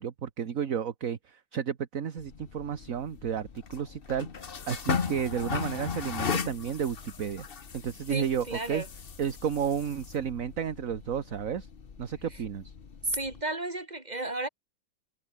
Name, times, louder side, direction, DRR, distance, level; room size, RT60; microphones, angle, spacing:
voice 1, 0.0-7.4 7.7-8.8 9.2-11.7 12.0-12.7, right 8 dB, 50° right, 1.6 m, -32 dB
sound 1, 2.2-13.4, left 6 dB, 35° left, 1.2 m, -37 dB
voice 2, 8.1-8.9 13.0-14.5, right 2 dB, 20° right, 3.9 m, -33 dB
omnidirectional pair, 2.0 m